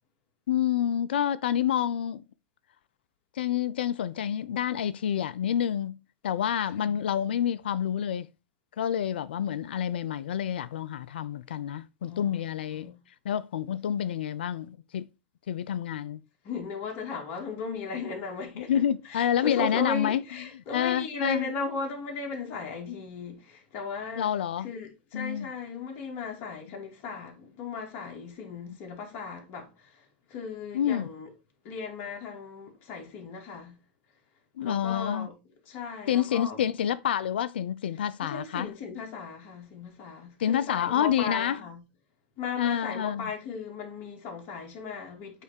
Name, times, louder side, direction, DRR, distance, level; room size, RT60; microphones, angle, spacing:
voice 1, 0.5-2.2 3.4-8.3 8.8-12.9 13.2-15.1 15.5-16.2 18.6-20.2 20.7-21.5 24.2-24.7 25.1-25.5 30.7-31.1 34.6-35.3 36.1-38.7 40.4-41.6 42.6-43.3, left 10 dB, 80° left, 0.4 m, -28 dB
voice 2, 12.1-13.0 16.4-18.7 19.0-24.3 24.6-31.3 31.6-33.8 34.6-35.3 35.6-36.6 38.2-41.8 42.4-45.4, left 4 dB, 45° left, 2.4 m, -37 dB
8.1 x 3.3 x 4.4 m
hypercardioid pair, 100°, 6 cm